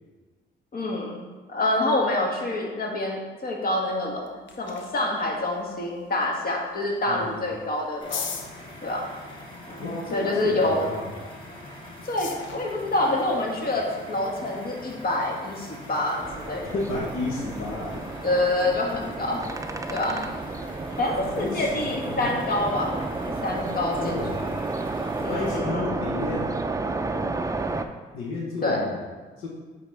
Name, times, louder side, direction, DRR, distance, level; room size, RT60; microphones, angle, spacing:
voice 1, 0.7-1.2 1.5-4.3 4.6-8.2 8.8-9.1 9.7-10.9 12.0-16.6 18.2-19.4 19.9-20.3 21.0-24.2 25.2-26.0 28.6-28.9, left 2 dB, 45° left, 0 dB, 1.4 m, -27 dB
sound 1, 4.0-16.6, left 6 dB, 70° left, 0.8 m, -44 dB
voice 2, 7.1-7.4 9.8-11.1 16.7-18.1 21.2-22.3 24.0-24.5 25.2-26.5 28.1-29.0 29.4-29.5, left 2 dB, 90° left, -2 dB, 1.1 m, -32 dB
sound 2, 8.0-25.6, left 1 dB, 25° left, 1.5 m, -43 dB
sound 3, 16.2-27.9, right 3 dB, 15° right, 0.4 m, -32 dB
8.6 x 4.1 x 3.3 m, 1.3 s
cardioid pair, 75°, 21 cm